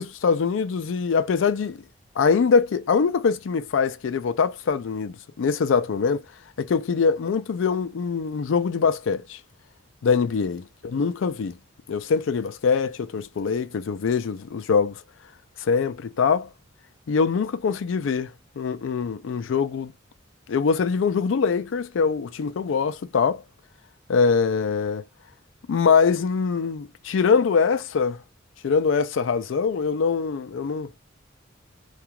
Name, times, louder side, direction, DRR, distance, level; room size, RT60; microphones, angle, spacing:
voice 1, 0.0-1.8 2.2-6.2 6.6-9.4 10.0-11.6 11.9-15.0 15.6-16.5 17.1-18.3 18.6-19.9 20.5-23.4 24.1-25.0 25.7-28.2 28.6-30.9, left 5 dB, 70° left, 0.4 m, -23 dB
2.3 x 2.3 x 2.8 m
head